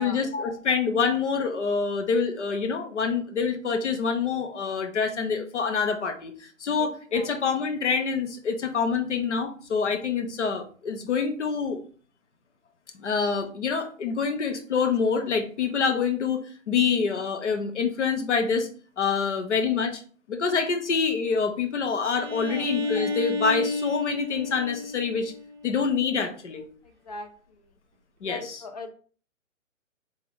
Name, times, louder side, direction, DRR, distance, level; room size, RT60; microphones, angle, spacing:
voice 1, 0.0-11.8 13.0-18.7 19.0-20.0 20.3-25.3 25.6-26.6 28.2-28.6, left 5 dB, 60° left, 6 dB, 0.9 m, -26 dB
voice 2, 6.8-7.3 22.4-22.7 27.0-27.3 28.2-28.9, left 3 dB, 30° left, 6 dB, 0.4 m, -39 dB
Bowed string instrument, 22.1-25.9, left 3 dB, 35° right, 0.6 m, -31 dB
3.7 x 2.5 x 3.7 m, 0.42 s
figure-of-eight pair, 135°, 40 cm